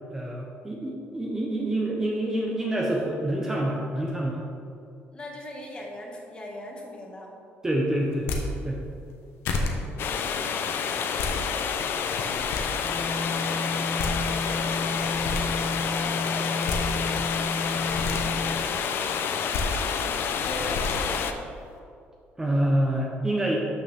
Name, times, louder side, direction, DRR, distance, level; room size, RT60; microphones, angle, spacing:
voice 1, 0.1-4.4 7.6-8.3 8.6-8.8 22.4-23.6, right 1 dB, 15° right, -2 dB, 0.9 m, -27 dB
voice 2, 5.1-7.4 9.9-10.9 14.1-16.4 17.8-19.2 19.5-21.4, left 1 dB, 20° left, -1 dB, 1.7 m, -41 dB
sound 1, 8.1-8.4 9.1-9.2 9.4-9.7 10.9-11.3 12.0-12.6 13.7-13.8 14.0-14.1 14.9-15.4 16.4-16.8 17.7-18.2 19.3-19.6 20.5-20.9, left 4 dB, 90° left, 1.2 m, -30 dB
sound 2, 10.0-21.3, left 7 dB, 55° left, 0.6 m, -28 dB
sound 3, 12.8-18.7, left 2 dB, 5° left, 1.2 m, -32 dB
12.5 x 6.5 x 3.6 m, 2.5 s
cardioid pair, 145°, 4 cm